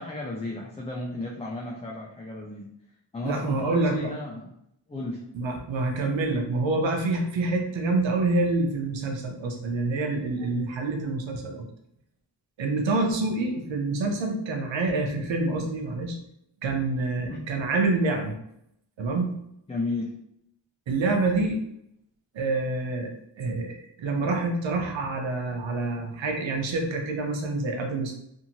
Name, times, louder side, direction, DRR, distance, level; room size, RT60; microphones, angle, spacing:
voice 1, 0.0-2.7 3.1-4.5 4.9-5.2 17.2-17.4 19.7-20.1, left 2 dB, 15° left, -2 dB, 0.5 m, -33 dB
voice 2, 3.2-4.1 5.3-11.7 12.6-16.2 16.6-18.4 19.0-19.3 20.9-21.6 22.3-23.1 23.4-28.2, right 2 dB, 80° right, 3 dB, 0.7 m, -27 dB
2.7 x 2.5 x 2.8 m, 0.75 s
cardioid pair, 40°, 45 cm